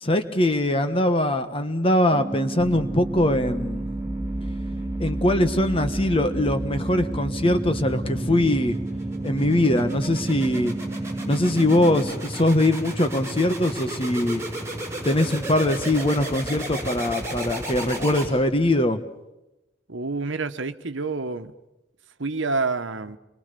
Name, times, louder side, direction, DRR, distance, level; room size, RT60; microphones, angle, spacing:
voice 1, 0.0-3.9 5.0-8.8 9.2-10.8 11.2-14.4 15.0-19.0, left 1 dB, 30° left, 1.3 m, -22 dB
sound 1, 2.1-12.1, right 2 dB, 40° right, 2.5 m, -33 dB
sound 2, 2.6-18.7, right 1 dB, 15° right, 6.3 m, -33 dB
voice 2, 19.9-21.5 22.2-23.2, right 3 dB, 75° right, 1.2 m, -28 dB
27.0 x 23.0 x 6.9 m
head